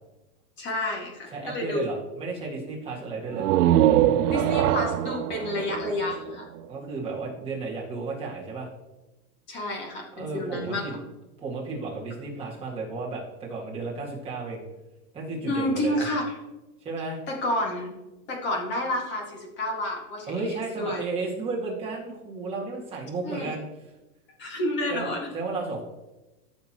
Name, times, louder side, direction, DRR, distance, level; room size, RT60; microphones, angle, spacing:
voice 1, 0.6-1.8 4.3-6.5 9.5-10.8 15.5-16.2 17.3-17.9 18.3-21.0 23.2-23.5 24.4-25.3, left 1 dB, 25° left, 0 dB, 2.1 m, -30 dB
voice 2, 1.3-3.5 6.7-8.7 10.2-11.0 11.4-14.6 15.1-16.1 16.8-17.2 20.3-23.6 24.9-25.8, right 3 dB, 10° right, -5 dB, 2.0 m, -33 dB
sound 1, 3.3-6.9, right 12 dB, 85° right, 0.6 m, -23 dB
14.5 x 6.7 x 3.0 m, 1.0 s
supercardioid pair, 170°, 46 cm